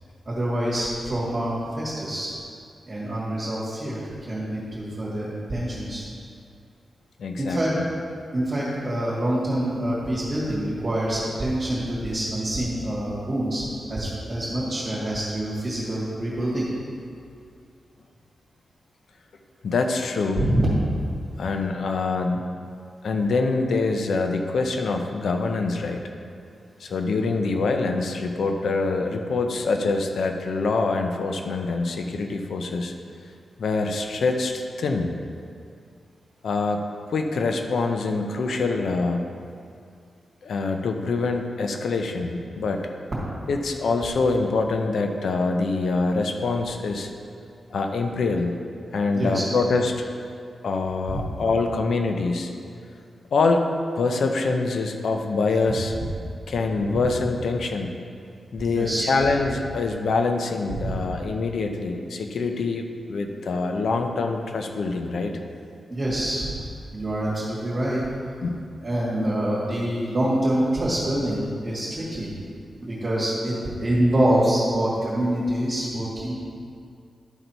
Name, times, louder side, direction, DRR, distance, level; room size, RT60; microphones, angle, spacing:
voice 1, 0.3-2.3 2.9-6.0 7.4-7.7 8.3-16.7 20.4-20.7 49.1-49.5 51.1-51.3 55.9-56.1 56.9-57.0 58.6-59.1 60.7-61.0 65.9-66.6 66.9-68.1 68.8-72.3 72.8-76.3, right 1 dB, 35° right, -10 dB, 2.0 m, -26 dB
voice 2, 7.2-7.8 19.6-20.5 21.4-22.5 23.0-26.0 26.8-32.9 33.6-35.1 36.4-39.2 40.4-42.8 43.5-47.1 47.7-48.5 48.9-50.0 50.6-52.5 53.3-53.7 54.0-55.9 56.5-57.9 58.5-65.4 68.4-68.6, left 3 dB, 80° left, 4 dB, 0.6 m, -25 dB
12.0 x 4.0 x 4.5 m, 2.4 s
wide cardioid pair, 120°, 0 cm